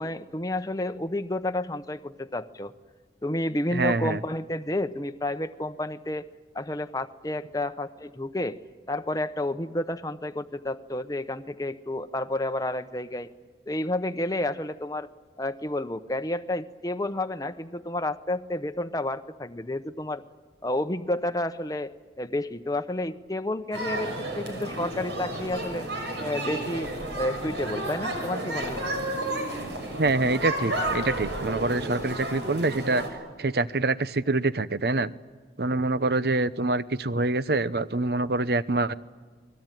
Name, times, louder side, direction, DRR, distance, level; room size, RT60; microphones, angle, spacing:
voice 1, 0.0-2.7 3.2-6.2 6.5-8.6 8.9-13.3 13.7-15.1 15.4-20.2 20.6-21.9 22.2-25.9 26.2-28.9, left 1 dB, 20° left, 10 dB, 0.8 m, -30 dB
voice 2, 3.7-4.2 30.0-33.0 33.4-35.1 35.6-38.9, right 2 dB, 60° right, 16 dB, 0.8 m, -25 dB
sound 1, 23.7-33.1, right 1 dB, 80° right, 5.9 m, -32 dB
29.0 x 20.5 x 9.1 m, 1.5 s
head